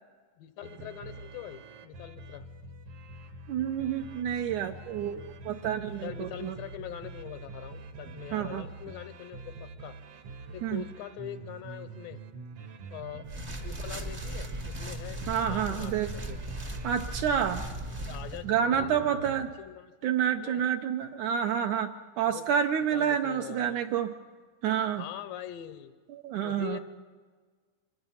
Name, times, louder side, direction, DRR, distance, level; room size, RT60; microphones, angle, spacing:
voice 1, 0.4-2.5 6.0-10.0 10.5-12.2 12.9-13.3 13.6-16.6 18.0-20.6 22.3-22.5 22.9-23.8 25.0-25.9 26.4-26.8, left 12 dB, 90° left, 11 dB, 2.5 m, -43 dB
sound 1, 0.6-19.5, right 3 dB, 60° right, 1.7 m, -45 dB
voice 2, 3.5-6.6 8.3-8.7 10.6-10.9 15.3-16.1 16.8-17.7 18.4-19.5 20.0-24.1 24.6-25.1 26.1-26.8, right 8 dB, 75° right, 6 dB, 1.9 m, -29 dB
sound 2, 13.2-18.4, right 1 dB, 40° right, 0.7 m, -38 dB
25.0 x 21.0 x 5.7 m, 1.5 s
omnidirectional pair, 4.0 m